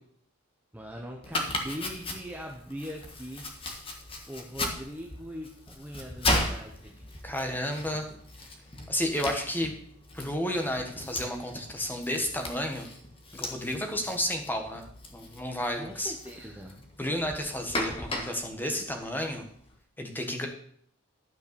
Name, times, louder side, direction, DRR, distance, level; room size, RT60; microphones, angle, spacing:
voice 1, 0.7-3.4 4.2-7.1 15.8-16.8, equal, 5° right, 0 dB, 0.9 m, -41 dB
Domestic sounds home sounds, 1.2-19.7, left 1 dB, 25° left, 1.4 m, -37 dB
voice 2, 7.2-8.0 8.9-9.7 10.1-12.9 13.3-14.8 15.1-16.1 17.0-19.5 20.0-20.5, left 1 dB, 10° left, 3 dB, 1.4 m, -31 dB
12.0 x 5.7 x 6.9 m, 0.63 s
head